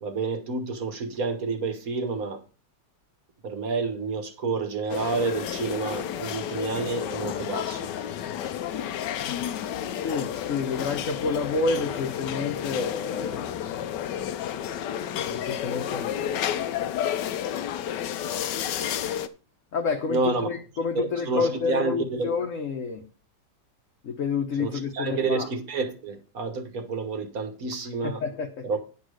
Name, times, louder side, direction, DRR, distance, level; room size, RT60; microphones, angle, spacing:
voice 1, 0.0-2.4 3.4-7.9 20.1-20.5 21.0-22.3 24.6-28.2 28.6-28.8, right 4 dB, 55° right, 1.7 m, -29 dB
sound 1, 4.9-19.3, left 10 dB, 80° left, 1.3 m, -31 dB
voice 2, 10.0-13.5 15.3-16.8 18.2-18.9 19.7-23.1 24.0-25.5 28.0-28.7, left 4 dB, 55° left, 1.2 m, -29 dB
10.0 x 5.1 x 6.4 m
omnidirectional pair, 1.9 m